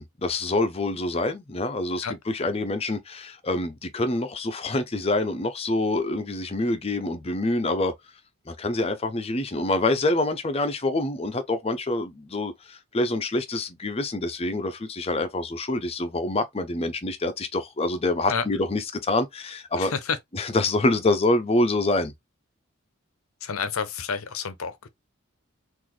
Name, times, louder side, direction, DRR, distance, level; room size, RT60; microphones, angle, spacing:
voice 1, 0.0-7.9 8.5-19.9 20.3-22.1, left 2 dB, 30° left, 0.5 m, -26 dB
voice 2, 19.8-20.2 23.4-24.9, left 6 dB, 85° left, 0.7 m, -29 dB
4.0 x 2.6 x 3.1 m
head